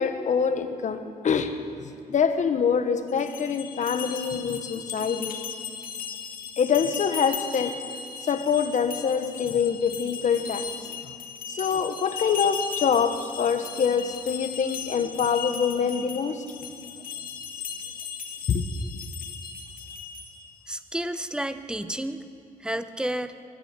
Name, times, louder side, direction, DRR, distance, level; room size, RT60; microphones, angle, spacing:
voice 1, 0.0-5.4 6.6-7.8 8.2-11.1 11.5-16.4 16.8-16.9 18.5-18.7, left 6 dB, 60° left, 1.4 m, -25 dB
sound 1, 3.1-20.5, left 7 dB, 90° left, 2.2 m, -37 dB
voice 2, 20.7-22.2 22.6-23.3, right 1 dB, 5° right, 0.9 m, -31 dB
21.5 x 13.5 x 9.9 m
wide cardioid pair, 135°, 14 cm